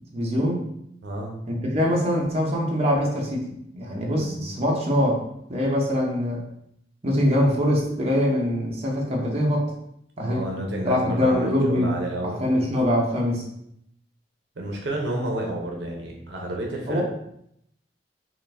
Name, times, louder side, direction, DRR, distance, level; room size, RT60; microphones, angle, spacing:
voice 1, 0.1-0.6 1.5-5.2 5.5-6.4 7.0-9.7 10.2-10.4 10.8-11.9 12.2-13.5 16.9-17.0, equal, 35° right, -2 dB, 0.7 m, -23 dB
voice 2, 1.0-1.4 4.1-4.5 10.2-12.4 14.6-17.0, right 1 dB, 75° right, 0 dB, 0.6 m, -30 dB
3.8 x 2.5 x 3.3 m, 0.74 s
head